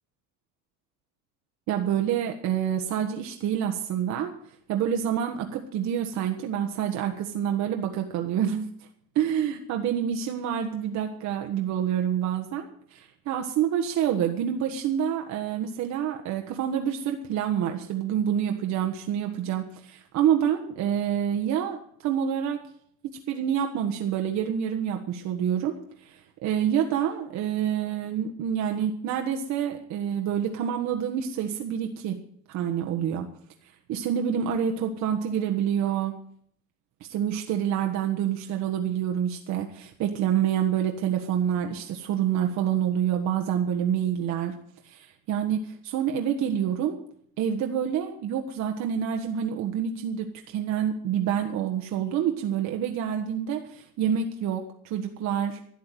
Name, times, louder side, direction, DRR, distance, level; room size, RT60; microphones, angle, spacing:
voice 1, 1.7-4.3 4.7-8.7 9.1-22.6 23.3-25.7 26.0-32.2 32.5-33.3 33.9-36.1 37.0-44.6 44.8-47.0 47.4-55.6, right 9 dB, 60° right, 4 dB, 1.5 m, -27 dB
12.5 x 9.5 x 9.3 m, 0.63 s
cardioid pair, 125°, 31 cm